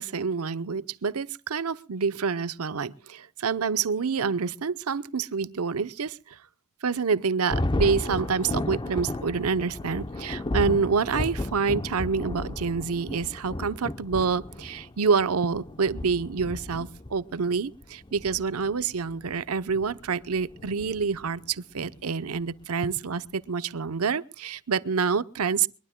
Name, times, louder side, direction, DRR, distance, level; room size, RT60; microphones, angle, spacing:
voice 1, 0.0-6.4 6.8-25.7, right 5 dB, 70° right, 0.8 m, -27 dB
Thunder, 7.5-21.5, left 1 dB, 20° left, 0.7 m, -34 dB
22.5 x 22.0 x 2.2 m
head